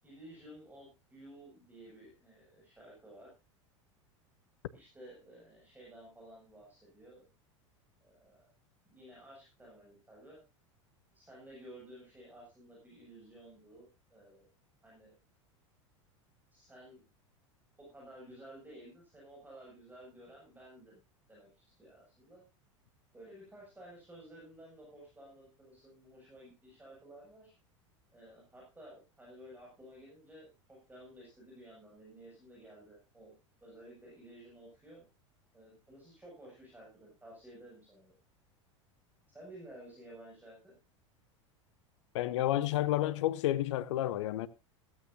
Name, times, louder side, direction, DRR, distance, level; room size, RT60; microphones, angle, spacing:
voice 1, 0.0-3.3 4.7-7.3 8.0-8.5 8.8-10.4 11.1-14.5 14.8-15.2 16.5-17.1 17.8-21.0 21.3-22.4 23.1-27.5 28.1-33.3 33.6-35.0 35.5-38.1 39.3-40.7, right 1 dB, 10° right, 7.3 m, -54 dB
voice 2, 42.1-44.5, left 14 dB, 70° left, 0.9 m, -30 dB
15.5 x 14.5 x 2.8 m
hypercardioid pair, 85°, 16 cm